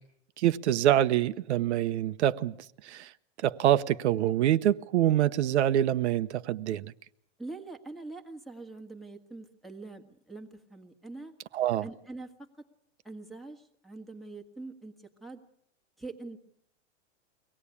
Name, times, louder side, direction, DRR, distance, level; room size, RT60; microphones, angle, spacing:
voice 1, 0.4-2.5 2.8-3.1 3.4-6.9 11.5-11.9, right 12 dB, 70° right, 0.9 m, -25 dB
voice 2, 7.4-11.3 11.8-12.5 13.0-15.4 16.0-16.4, right 3 dB, ahead, 1.5 m, -44 dB
24.0 x 17.5 x 8.5 m
supercardioid pair, 155°, 35 cm